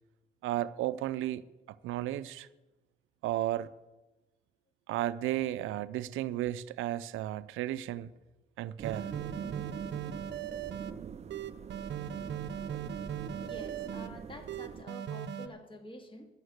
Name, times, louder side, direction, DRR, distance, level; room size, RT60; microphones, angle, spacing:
voice 1, 0.4-1.4 1.8-2.5 3.2-3.7 4.9-8.1 8.6-9.1, right 14 dB, 85° right, 0.5 m, -33 dB
sound 1, 8.8-14.8, right 7 dB, 35° right, 0.4 m, -44 dB
sound 2, 8.8-10.9 11.3-14.1 14.5-15.5, right 9 dB, 60° right, 0.8 m, -38 dB
voice 2, 13.4-16.3, left 1 dB, 25° left, 2.0 m, -48 dB
10.5 x 7.8 x 8.1 m
cardioid pair, 90°, 20 cm